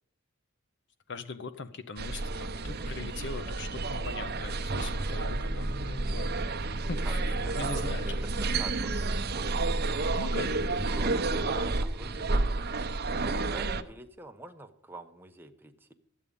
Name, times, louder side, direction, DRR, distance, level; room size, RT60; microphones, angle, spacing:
voice 1, 1.1-6.6 6.9-8.1 10.2-10.8, left 3 dB, 55° left, 10 dB, 0.7 m, -41 dB
sound 1, 2.0-13.8, right 2 dB, 50° right, 0.8 m, -30 dB
voice 2, 6.8-10.3 10.9-15.9, right 2 dB, 10° right, 5 dB, 0.9 m, -46 dB
12.5 x 8.4 x 5.3 m, 0.72 s
head